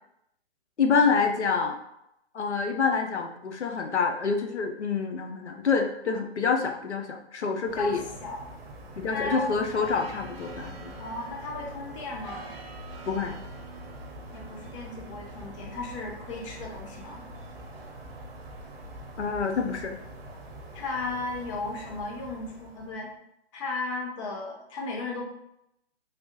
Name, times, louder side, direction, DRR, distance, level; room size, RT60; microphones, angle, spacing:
voice 1, 0.8-1.8 2.3-8.0 9.0-10.9 13.1-13.4 19.2-19.9, left 5 dB, 85° left, 3 dB, 0.6 m, -27 dB
voice 2, 7.6-8.5 9.1-9.5 11.0-12.5 14.3-17.3 20.7-23.1 23.5-25.2, left 3 dB, 30° left, 0 dB, 0.7 m, -35 dB
sound 1, 7.6-23.1, right 1 dB, 60° right, 0.9 m, -43 dB
3.4 x 2.4 x 2.8 m, 0.81 s
figure-of-eight pair, 130°, 33 cm